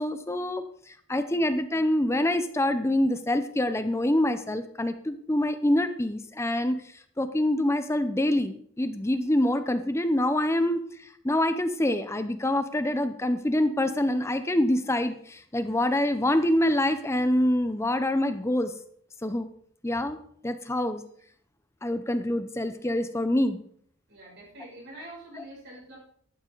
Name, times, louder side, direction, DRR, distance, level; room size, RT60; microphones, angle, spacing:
voice 1, 0.0-18.7 19.2-19.5 19.8-20.2 20.4-21.0 21.8-23.6, left 1 dB, 10° left, 10 dB, 0.6 m, -26 dB
voice 2, 24.1-26.0, right 1 dB, 50° right, -4 dB, 6.7 m, -45 dB
14.0 x 11.5 x 4.0 m, 0.63 s
head